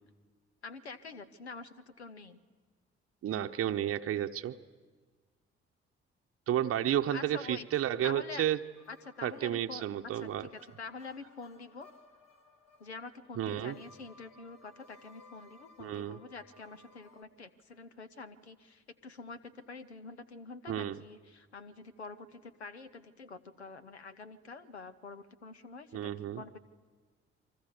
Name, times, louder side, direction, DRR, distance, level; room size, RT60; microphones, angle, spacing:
voice 1, 0.6-2.4 7.1-7.7 8.0-8.5 8.9-9.8 10.1-11.9 12.8-26.6, left 4 dB, 85° left, 13 dB, 0.8 m, -46 dB
voice 2, 3.2-4.6 6.5-8.6 9.2-10.5 13.4-13.8 15.8-16.2 20.7-21.0 25.9-26.4, right 11 dB, 45° right, 6 dB, 0.8 m, -32 dB
sound 1, 8.8-17.2, left 3 dB, 55° left, 2.0 m, -60 dB
29.5 x 24.0 x 7.1 m, 1.5 s
figure-of-eight pair, 40°, 32 cm